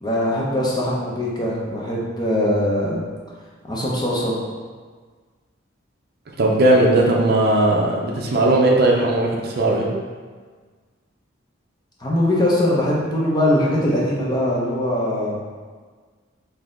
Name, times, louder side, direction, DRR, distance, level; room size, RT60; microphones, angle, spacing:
voice 1, 0.0-3.0 3.7-4.3 12.0-15.4, left 1 dB, 20° left, -5 dB, 0.7 m, -21 dB
voice 2, 6.4-9.9, right 2 dB, 50° right, -1 dB, 0.6 m, -17 dB
4.1 x 2.7 x 3.7 m, 1.5 s
head